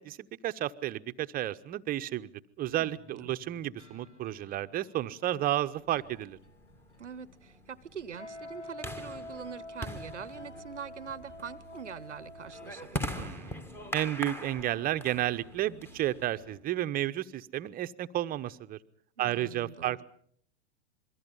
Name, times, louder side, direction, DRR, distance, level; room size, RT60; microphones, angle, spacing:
voice 1, 0.0-2.3 2.6-6.4 13.2-13.6 13.9-18.8 19.2-20.0, right 13 dB, 25° right, 0.9 m, -32 dB
sound 1, 2.9-16.6, left 1 dB, 80° left, 2.8 m, -56 dB
sound 2, 6.1-16.5, equal, 5° left, 1.5 m, -42 dB
voice 2, 7.0-13.3 19.2-20.0, right 7 dB, 85° right, 0.9 m, -44 dB
Wind instrument woodwind instrument, 8.1-12.9, left 1 dB, 45° left, 2.5 m, -46 dB
27.0 x 22.5 x 5.5 m
figure-of-eight pair, 100°, 35 cm